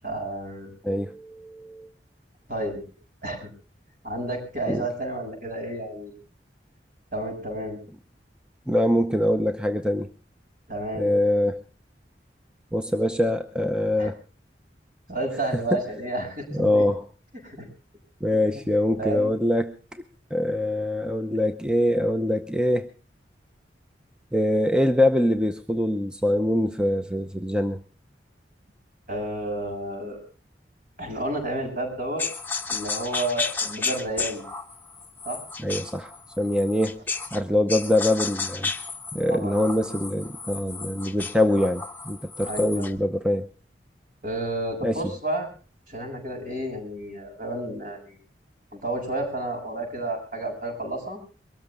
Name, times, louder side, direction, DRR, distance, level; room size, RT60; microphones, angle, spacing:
voice 1, 0.0-0.7 2.5-2.8 3.2-3.5 4.0-6.2 7.1-7.8 10.7-11.1 14.0-14.1 15.1-16.9 17.4-17.7 18.4-18.6 18.9-19.3 29.1-30.2 31.0-32.2 32.7-34.4 35.3-35.4 39.3-39.9 42.5-42.9 44.2-45.5 45.9-48.2 48.7-51.2, right 1 dB, 50° right, 2 dB, 6.9 m, -31 dB
voice 2, 0.8-1.9 4.7-4.9 8.7-10.1 10.9-11.6 12.7-14.2 16.6-17.0 18.2-20.0 20.3-22.9 24.3-27.8 35.6-36.1 36.4-37.0 37.3-38.7 39.1-43.5 44.8-45.0, left 1 dB, 5° right, 7 dB, 0.7 m, -24 dB
sound 1, 32.2-37.4 37.7-43.0, left 4 dB, 10° left, 1.0 m, -33 dB
23.0 x 14.0 x 3.6 m, 0.36 s
head